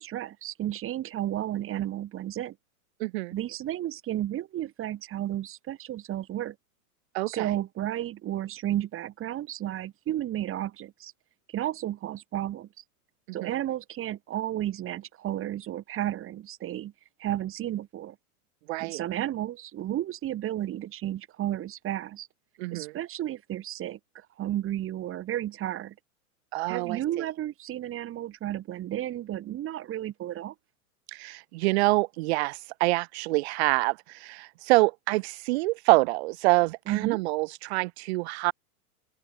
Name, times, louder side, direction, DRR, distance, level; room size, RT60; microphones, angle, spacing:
voice 1, 0.0-2.6 3.3-6.6 7.3-11.1 11.5-12.7 13.3-16.9 17.2-18.2 18.8-22.3 22.7-25.9 26.7-30.5 36.9-37.2, right 12 dB, 25° right, 4.3 m, -32 dB
voice 2, 3.0-3.4 7.1-7.5 13.4-13.5 18.7-19.0 22.6-22.9 26.5-27.2 31.1-38.5, right 23 dB, 45° right, 0.7 m, -26 dB
open air
hypercardioid pair, 130°, 46 cm